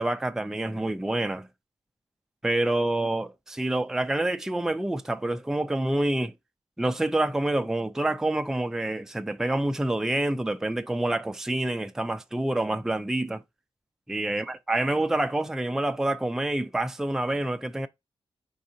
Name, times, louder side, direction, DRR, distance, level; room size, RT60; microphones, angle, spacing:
voice 1, 0.0-1.5 2.4-6.3 6.8-13.4 14.1-17.9, right 1 dB, 5° right, 0.4 m, -27 dB
4.6 x 3.6 x 2.7 m
wide cardioid pair, 105°, 10 cm